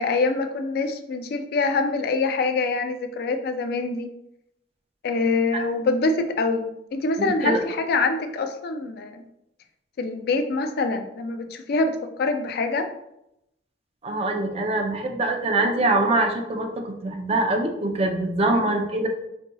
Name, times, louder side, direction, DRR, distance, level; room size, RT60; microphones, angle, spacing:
voice 1, 0.0-4.1 5.0-9.2 10.0-12.9 18.5-18.6, left 3 dB, 60° left, 7 dB, 0.3 m, -25 dB
voice 2, 7.2-7.6 14.0-19.1, right 2 dB, 35° right, 3 dB, 0.4 m, -24 dB
4.0 x 2.6 x 2.2 m, 0.82 s
head